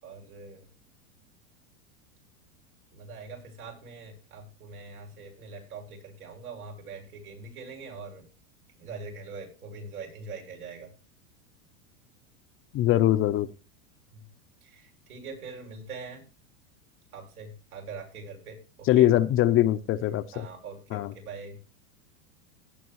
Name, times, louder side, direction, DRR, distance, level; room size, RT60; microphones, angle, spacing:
voice 1, 0.0-0.6 2.9-8.2 8.8-10.9 14.1-14.2 14.6-16.3 17.1-19.1 20.3-21.6, right 4 dB, 85° right, 6.6 m, -43 dB
voice 2, 12.7-13.5 18.9-20.4 20.9-21.1, left 13 dB, 30° left, 0.6 m, -22 dB
17.5 x 8.7 x 3.0 m
supercardioid pair, 125°, 44 cm